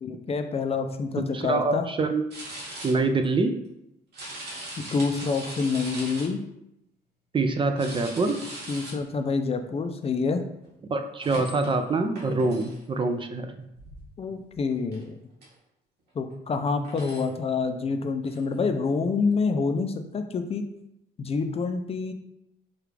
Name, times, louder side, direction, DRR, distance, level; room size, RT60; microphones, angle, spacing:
voice 1, 0.0-1.9 4.9-6.4 8.7-10.4 14.2-15.2 16.2-20.7 21.2-22.1, left 4 dB, 35° left, 7 dB, 0.4 m, -27 dB
voice 2, 1.3-2.2 2.8-3.5 7.3-8.4 10.9-13.5, right 3 dB, 30° right, 7 dB, 0.4 m, -25 dB
sound 1, 2.3-2.9 3.2-3.3 4.1-6.3 7.8-8.9 10.6-10.7 11.2-11.8 12.1-12.8 13.7-14.1 14.5-14.6 14.9-15.0 15.4-15.5 16.3-16.4 16.8-17.3 18.2-18.4 18.8-18.9, right 1 dB, 75° right, 1.3 m, -40 dB
4.8 x 2.4 x 3.2 m, 0.82 s
cardioid pair, 100°, 17 cm